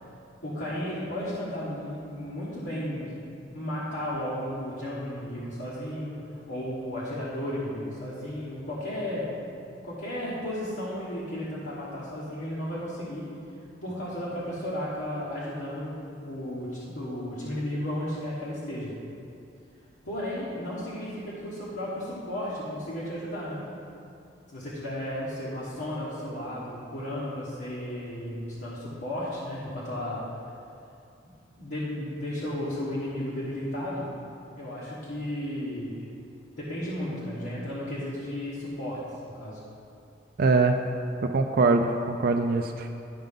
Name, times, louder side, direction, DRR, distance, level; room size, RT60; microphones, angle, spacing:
voice 1, 0.4-3.1 3.5-9.3 9.8-13.3 13.8-19.0 20.0-23.6 24.5-30.2 31.2-34.1 34.5-36.0 36.6-39.6, left 1 dB, 70° left, -9 dB, 1.4 m, -34 dB
voice 2, 40.4-40.8 41.3-42.9, right 3 dB, 55° right, 4 dB, 0.4 m, -23 dB
11.5 x 5.2 x 3.7 m, 2.6 s
head